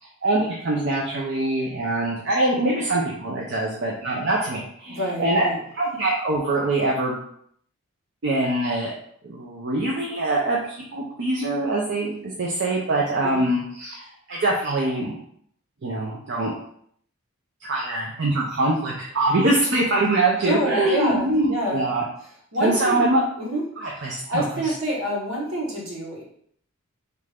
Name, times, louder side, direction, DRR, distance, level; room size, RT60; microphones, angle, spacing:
voice 1, 0.0-5.5 5.7-7.2 8.2-8.9 9.2-15.1 15.8-16.5 17.6-22.0 22.6-23.2 23.8-24.7, right 2 dB, 55° right, -3 dB, 0.5 m, -24 dB
voice 2, 4.9-5.6 13.2-13.5 20.4-21.8 22.5-23.0 23.4-23.6 24.0-26.2, equal, 70° right, -4 dB, 1.2 m, -27 dB
3.2 x 2.5 x 3.4 m, 0.66 s
head